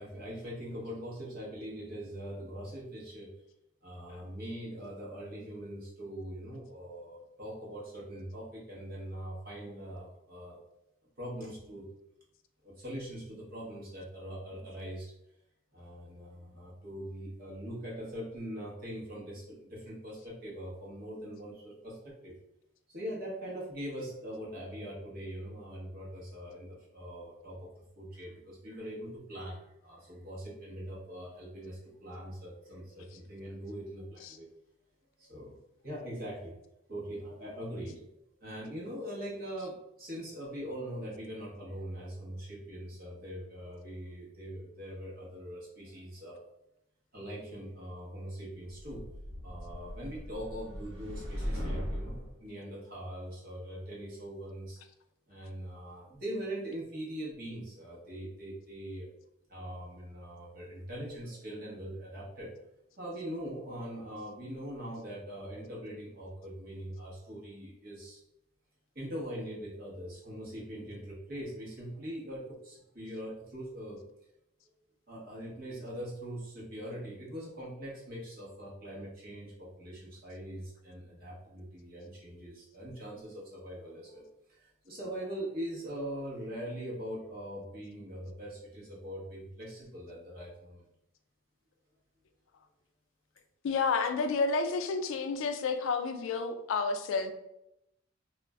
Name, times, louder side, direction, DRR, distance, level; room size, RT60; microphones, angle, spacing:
voice 1, 0.0-3.3 3.8-10.6 11.2-11.9 12.6-15.1 15.7-22.3 22.9-27.7 27.9-34.5 35.2-35.6 35.8-36.5 36.9-38.0 38.4-46.4 47.1-49.1 49.4-54.8 55.3-59.1 59.5-62.6 63.0-68.2 68.9-74.1 75.1-90.9, equal, 45° right, -5 dB, 0.9 m, -42 dB
sound 1, 48.7-52.3, equal, 70° right, 1.0 m, -38 dB
voice 2, 93.6-97.3, left 4 dB, 75° left, 8 dB, 0.3 m, -30 dB
2.4 x 2.0 x 3.4 m, 0.84 s
head